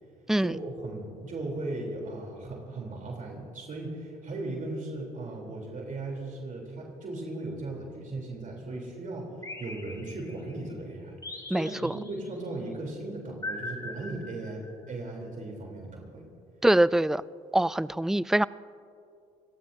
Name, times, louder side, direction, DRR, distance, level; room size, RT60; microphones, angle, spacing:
voice 1, 0.4-11.2 11.5-16.2, right 2 dB, 50° right, 0 dB, 3.5 m, -37 dB
sound 1, 9.4-10.6 11.2-12.4 13.4-14.9, left 2 dB, 20° left, 2.8 m, -41 dB
voice 2, 11.5-11.9 16.6-17.2 17.5-18.4, right 1 dB, 5° right, 19 dB, 0.3 m, -23 dB
28.0 x 18.0 x 2.7 m, 2.5 s
supercardioid pair, 70°, 17 cm